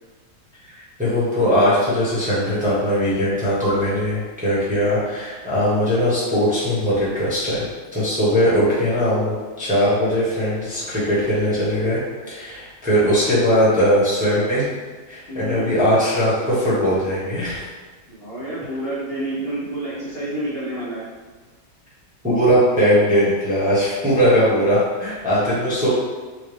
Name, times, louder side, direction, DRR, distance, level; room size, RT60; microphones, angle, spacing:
voice 1, 1.0-7.7 7.9-12.0 12.3-14.7 15.1-17.6 22.2-25.9, equal, 5° right, -10 dB, 0.7 m, -19 dB
voice 2, 8.2-8.6 12.9-13.2 15.3-15.6 18.1-21.0 25.3-25.4, right 1 dB, 65° left, -9 dB, 0.6 m, -29 dB
4.6 x 2.4 x 3.3 m, 1.4 s
omnidirectional pair, 2.2 m